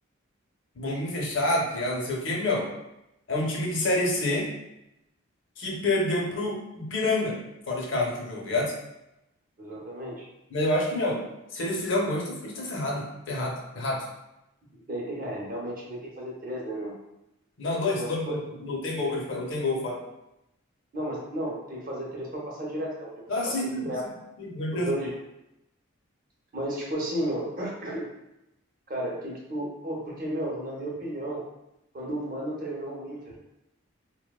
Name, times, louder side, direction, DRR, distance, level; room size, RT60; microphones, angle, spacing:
voice 1, 0.7-2.7 3.3-4.5 5.6-7.4 7.7-8.7 10.5-11.2 11.5-14.1 17.6-20.0 23.3-23.9 24.4-24.9, left 2 dB, 65° left, -2 dB, 0.6 m, -28 dB
voice 2, 9.6-10.3 14.9-16.9 18.0-18.1 20.9-23.5 23.8-24.0 24.7-25.1 26.5-28.1 28.9-31.4 31.9-33.4, right 1 dB, 40° right, -3 dB, 0.6 m, -33 dB
2.8 x 2.1 x 2.2 m, 0.89 s
head